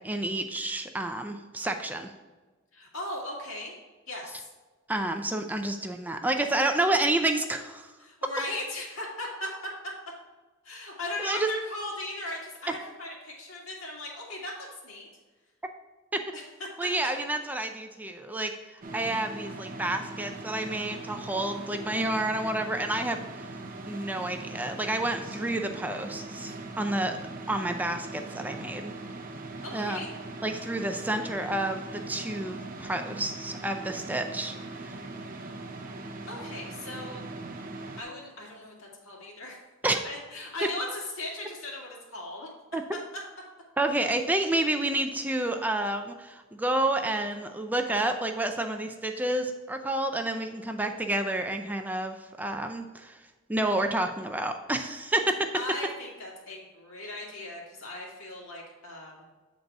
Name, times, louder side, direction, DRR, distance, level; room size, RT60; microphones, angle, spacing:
voice 1, 0.0-2.1 4.9-7.9 11.2-11.5 16.8-23.2 23.8-27.2 27.5-28.9 29.7-30.0 30.4-35.0 39.8-40.0 42.7-42.8 43.8-53.2 53.5-55.5, right 1 dB, 10° right, 5 dB, 0.4 m, -29 dB
voice 2, 2.7-3.7 4.1-4.5 8.0-9.9 10.6-15.1 16.3-16.7 29.6-30.1 36.0-37.2 38.0-39.6 40.0-42.5 55.5-59.1, left 1 dB, 85° left, -2 dB, 2.0 m, -38 dB
sound 1, 18.8-38.0, right 2 dB, 45° right, 0.7 m, -40 dB
7.7 x 4.0 x 4.6 m, 1.3 s
head